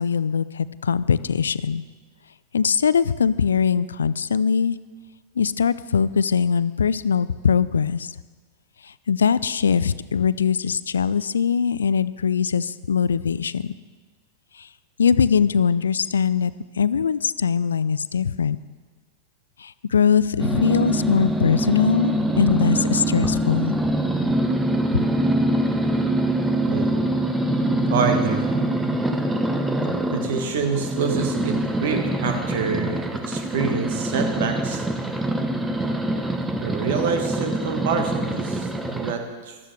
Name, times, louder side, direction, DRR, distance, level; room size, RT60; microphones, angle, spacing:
voice 1, 0.0-1.8 2.5-4.8 5.4-8.2 8.8-13.7 14.5-14.7 15.0-18.6 19.6-23.7 24.9-25.0, left 6 dB, 70° left, 17 dB, 0.3 m, -21 dB
sound 1, 20.4-39.1, right 1 dB, 10° right, 0.8 m, -24 dB
voice 2, 26.7-27.0 27.9-28.5 29.8-34.9 36.6-39.6, right 5 dB, 55° right, 6 dB, 1.5 m, -27 dB
15.5 x 12.5 x 3.4 m, 1.4 s
figure-of-eight pair, 90°, 0 cm